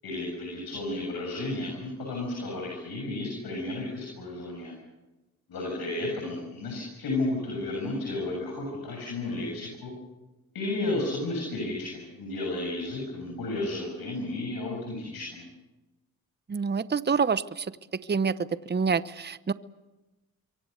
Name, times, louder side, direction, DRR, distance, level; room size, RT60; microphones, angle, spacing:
voice 1, 0.0-4.7 5.5-9.9 10.5-15.5, left 2 dB, 75° left, 0 dB, 7.5 m, -33 dB
voice 2, 16.5-17.7 18.1-18.4 18.7-19.5, right 5 dB, 30° right, 15 dB, 0.9 m, -26 dB
28.0 x 23.5 x 6.8 m, 1.1 s
cardioid pair, 60°, 36 cm